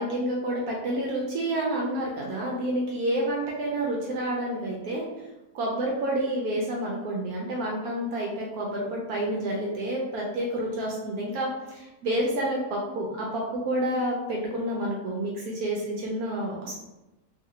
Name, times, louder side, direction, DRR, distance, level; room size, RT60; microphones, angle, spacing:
voice 1, 0.0-5.0 5.5-16.8, right 1 dB, 70° right, -2 dB, 1.0 m, -29 dB
3.1 x 2.5 x 2.8 m, 1.0 s
omnidirectional pair, 1.8 m